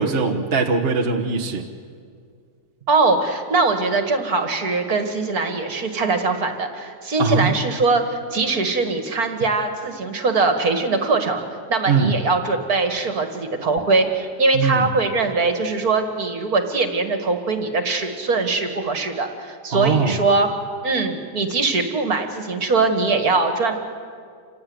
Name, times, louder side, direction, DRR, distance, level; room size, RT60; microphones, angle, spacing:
voice 1, 0.0-1.6 7.2-7.5 11.9-12.1 14.5-14.9 19.7-20.2, right 5 dB, 35° right, 1 dB, 1.4 m, -21 dB
voice 2, 2.9-11.4 11.7-20.5 20.8-23.8, right 3 dB, 50° right, 6 dB, 2.4 m, -21 dB
27.5 x 17.0 x 9.6 m, 2.1 s
omnidirectional pair, 2.0 m